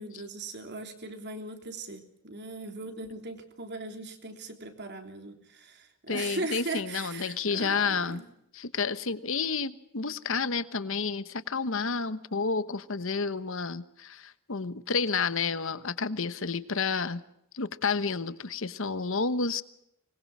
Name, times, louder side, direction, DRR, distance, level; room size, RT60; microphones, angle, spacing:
voice 1, 0.0-8.2, right 3 dB, 55° right, 5 dB, 3.4 m, -39 dB
voice 2, 6.1-8.2 8.5-17.2 17.5-19.6, left 5 dB, 65° left, 14 dB, 1.1 m, -30 dB
24.5 x 21.0 x 6.2 m, 0.78 s
head